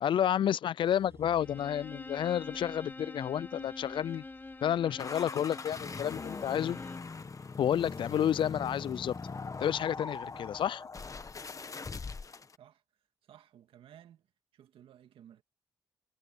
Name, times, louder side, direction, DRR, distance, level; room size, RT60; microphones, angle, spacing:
voice 1, 0.0-4.2 4.6-6.8 7.6-9.1 9.6-10.8, left 10 dB, 65° left, 0.4 m, -30 dB
sound 1, 0.8-11.0 11.4-12.2, right 3 dB, 30° right, 5.4 m, -63 dB
Bowed string instrument, 1.4-7.2, left 3 dB, 20° left, 1.5 m, -46 dB
sound 2, 5.0-12.6, left 4 dB, 35° left, 1.5 m, -41 dB
voice 2, 13.2-14.3 14.5-15.4, right 10 dB, 80° right, 2.2 m, -56 dB
supercardioid pair, 60°, 9 cm